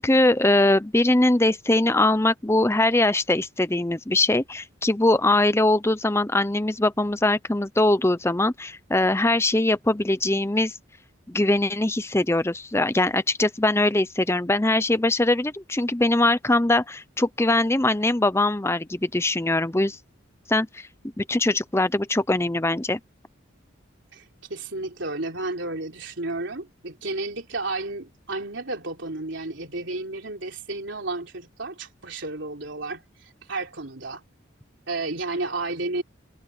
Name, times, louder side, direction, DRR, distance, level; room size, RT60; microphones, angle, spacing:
voice 1, 0.0-10.7 11.3-20.0 20.5-20.9 21.2-23.0, left 2 dB, 15° left, 0.7 m, -22 dB
voice 2, 24.1-34.2 34.9-36.0, right 2 dB, 65° right, 3.7 m, -32 dB
head